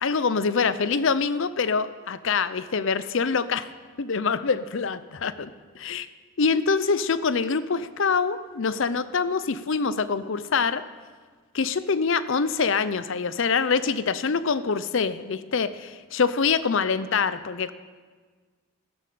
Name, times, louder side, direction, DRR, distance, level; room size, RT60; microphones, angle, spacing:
voice 1, 0.0-3.7 4.0-5.5 5.7-6.1 6.4-10.8 11.5-17.7, left 5 dB, 55° left, 14 dB, 0.5 m, -25 dB
14.0 x 9.9 x 6.8 m, 1.5 s
head